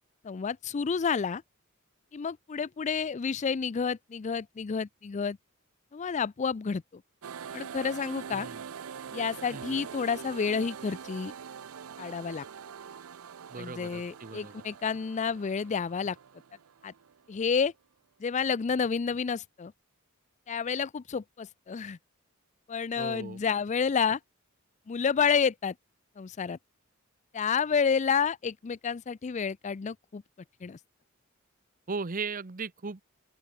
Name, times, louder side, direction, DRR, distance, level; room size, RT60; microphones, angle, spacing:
voice 1, 0.2-1.4 2.1-5.4 5.9-7.0 7.5-8.5 9.1-11.3 12.0-12.5 13.6-16.2 16.8-16.9 17.3-17.7 18.2-19.7 20.5-22.0 22.7-24.2 24.9-25.7 26.2-26.6 27.3-30.2 30.6-30.8, left 6 dB, 35° left, 0.4 m, -30 dB
sound 1, 7.2-17.5, right 7 dB, 85° right, 0.5 m, -44 dB
voice 2, 8.3-8.7 9.5-9.9 13.5-14.6 23.0-23.4 31.9-33.0, right 4 dB, 40° right, 0.9 m, -37 dB
open air
head